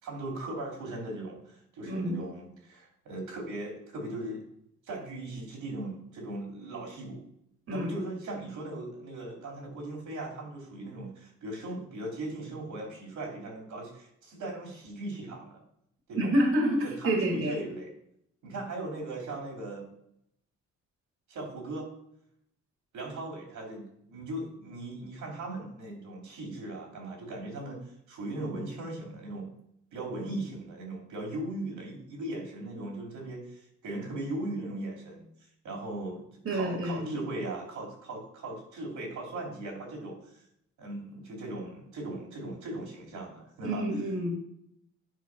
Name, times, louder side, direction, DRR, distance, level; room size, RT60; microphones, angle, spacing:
voice 1, 0.0-4.4 4.9-7.2 7.7-15.6 16.1-16.3 16.7-17.9 18.4-19.9 21.3-21.9 22.9-27.8 28.1-29.5 29.9-35.2 35.6-36.2 36.5-40.2 40.8-44.0, right 2 dB, 75° right, 0 dB, 3.1 m, -38 dB
voice 2, 1.9-2.2 7.7-7.9 16.2-17.5 36.5-37.1 43.6-44.3, right 1 dB, 45° right, 0 dB, 2.2 m, -28 dB
9.3 x 4.0 x 6.0 m, 0.74 s
cardioid pair, 90°, 30 cm